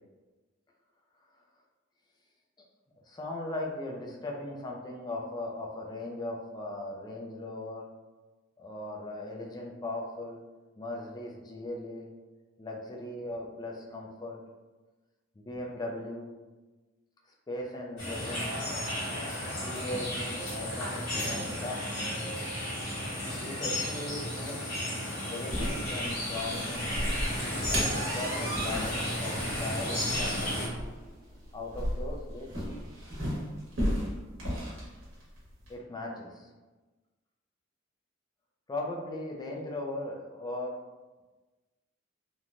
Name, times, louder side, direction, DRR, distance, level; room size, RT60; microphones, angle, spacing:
voice 1, 3.1-7.9 8.6-10.4 10.8-12.1 12.6-14.4 15.4-16.3 17.5-18.5 19.4-21.8 23.3-24.8 25.3-27.0 27.7-31.0 31.5-32.7 35.7-36.5 38.7-40.8, left 2 dB, 20° left, 0 dB, 0.4 m, -38 dB
sound 1, 18.0-30.7, left 1 dB, 70° left, 1.3 m, -33 dB
sound 2, 25.5-35.7, equal, 75° right, 1.1 m, -35 dB
sound 3, 27.3-29.0 29.4-29.5 30.0-30.1 30.4-30.5 31.5-31.6, right 2 dB, 50° right, 0.9 m, -39 dB
3.0 x 2.1 x 2.5 m, 1.2 s
head